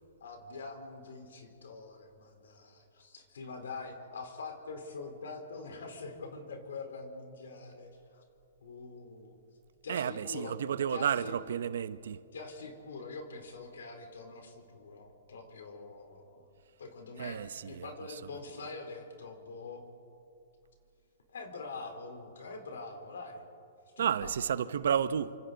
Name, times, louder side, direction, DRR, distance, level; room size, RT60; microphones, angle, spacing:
voice 1, 0.2-8.2 8.6-9.4 9.8-10.6 10.9-11.3 12.3-16.5 16.8-19.8 21.3-23.4 24.0-24.3, left 3 dB, 85° left, 4.0 m, -44 dB
voice 2, 9.9-12.2 17.2-18.2 24.0-25.4, right 8 dB, 75° right, 0.8 m, -32 dB
28.0 x 26.0 x 4.0 m
hypercardioid pair, 145°, 0 cm